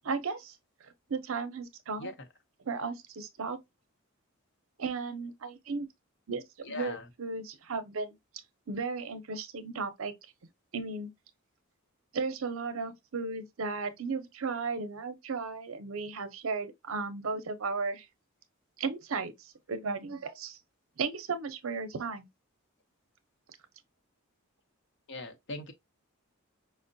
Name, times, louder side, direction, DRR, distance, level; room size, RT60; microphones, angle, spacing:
voice 1, 0.0-0.6 1.1-2.1 2.6-3.6 4.8-5.9 6.3-8.2 8.7-10.1 10.7-11.1 12.1-18.1 18.8-20.6 21.0-22.3, right 4 dB, 70° right, 0.6 m, -35 dB
voice 2, 6.6-7.1 25.1-25.7, left 3 dB, 60° left, 0.7 m, -40 dB
5.2 x 2.1 x 2.6 m
head